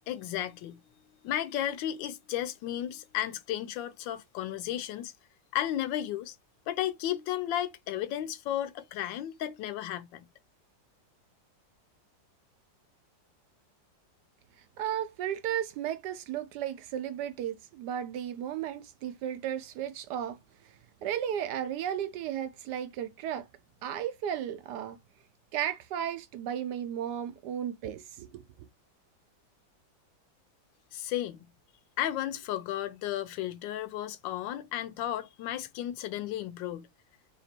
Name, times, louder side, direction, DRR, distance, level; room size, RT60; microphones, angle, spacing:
voice 1, 0.1-0.8 1.2-5.1 5.5-6.4 6.7-10.3 30.9-31.5 32.0-36.9, left 12 dB, 90° left, 1.3 m, -33 dB
voice 2, 14.8-20.4 20.6-23.5 23.8-25.0 25.5-28.7, right 10 dB, 75° right, 1.1 m, -34 dB
3.3 x 2.9 x 4.3 m
omnidirectional pair, 2.0 m